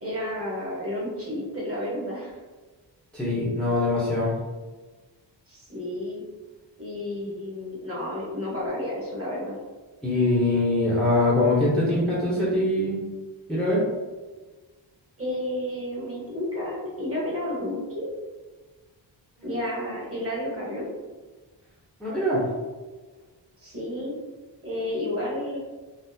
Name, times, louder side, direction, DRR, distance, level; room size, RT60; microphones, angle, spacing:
voice 1, 0.0-2.3 5.5-6.2 6.8-9.6 15.2-18.1 19.4-20.8 23.6-24.1 24.6-25.6, left 1 dB, 30° right, -6 dB, 1.2 m, -31 dB
voice 2, 3.1-4.3 10.0-13.0 13.5-13.8 22.0-22.4, left 1 dB, ahead, -8 dB, 0.7 m, -23 dB
3.7 x 2.0 x 2.7 m, 1.3 s
wide cardioid pair, 100°, 46 cm